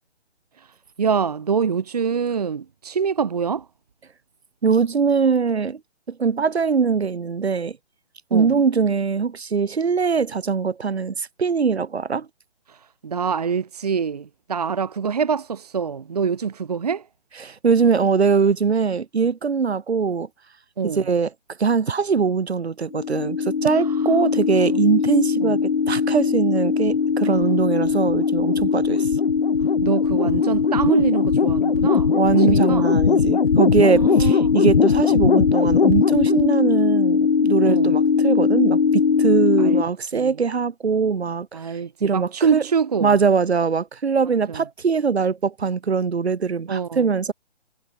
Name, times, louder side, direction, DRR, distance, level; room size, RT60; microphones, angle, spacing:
voice 1, 0.6-3.7 8.3-8.6 12.7-17.1 20.8-21.1 23.8-24.1 24.7-24.8 25.4-25.6 27.2-27.5 29.6-32.9 33.8-34.5 37.6-38.0 39.6-40.4 41.5-43.1 44.3-44.7 46.7-47.1, right 6 dB, 35° right, 1.4 m, -25 dB
voice 2, 4.6-5.8 6.1-7.8 8.3-12.3 17.4-20.3 21.0-21.3 21.6-29.1 32.1-41.5 42.0-42.6 43.0-47.3, right 5 dB, 65° right, 3.6 m, -22 dB
sound 1, 22.9-39.8, left 6 dB, 55° left, 4.2 m, -19 dB
hypercardioid pair, 180°, 34 cm